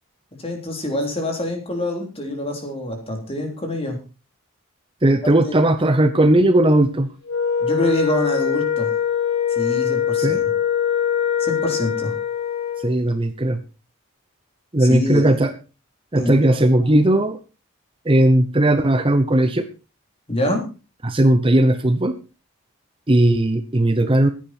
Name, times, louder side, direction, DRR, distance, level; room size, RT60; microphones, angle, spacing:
voice 1, 0.4-4.0 5.2-5.6 7.6-8.9 9.5-10.5 11.4-12.2 14.8-15.4 16.1-17.0 20.3-20.6, left 1 dB, 25° left, 3 dB, 3.5 m, -26 dB
voice 2, 5.0-7.1 10.2-10.4 12.8-13.6 14.7-15.5 16.1-17.4 18.1-19.6 21.0-22.1 23.1-24.3, right 1 dB, 25° right, 10 dB, 0.8 m, -17 dB
Wind instrument woodwind instrument, 7.3-12.9, left 8 dB, 65° left, 4.7 m, -22 dB
15.5 x 10.0 x 4.4 m, 0.32 s
head